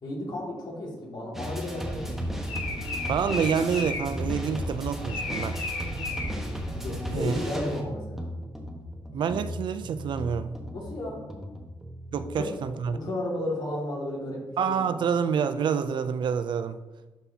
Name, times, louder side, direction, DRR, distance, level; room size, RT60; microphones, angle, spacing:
voice 1, 0.0-2.4 6.7-8.3 10.7-11.2 12.4-12.5 12.9-14.9, left 1 dB, 55° left, -3 dB, 2.3 m, -33 dB
sound 1, 1.3-12.7, equal, 5° right, 1.0 m, -35 dB
sound 2, 2.0-7.6, left 3 dB, 80° left, 1.5 m, -36 dB
voice 2, 3.1-5.6 7.1-7.3 9.1-10.5 12.1-13.0 14.6-16.8, right 7 dB, 60° right, 12 dB, 0.4 m, -27 dB
11.5 x 4.1 x 2.8 m, 1.1 s
cardioid pair, 105°, 9 cm